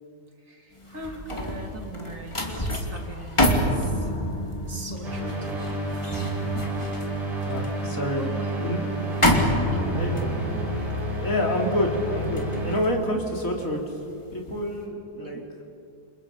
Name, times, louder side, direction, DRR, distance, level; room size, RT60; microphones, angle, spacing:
voice 1, 0.4-4.1 4.7-6.0 7.7-10.2 10.8-11.0 15.2-15.5, right 1 dB, 50° right, 2 dB, 3.0 m, -41 dB
sound 1, 0.8-14.1 14.5-14.8, equal, 15° left, 2.5 m, -28 dB
sound 2, 5.0-12.7, right 1 dB, 75° right, 5.2 m, -30 dB
voice 2, 7.4-8.2 8.6-8.8 9.9-10.3 11.1-13.8 14.3-15.4, left 1 dB, 50° left, 1 dB, 3.4 m, -28 dB
29.0 x 26.5 x 5.6 m, 2.5 s
omnidirectional pair, 1.8 m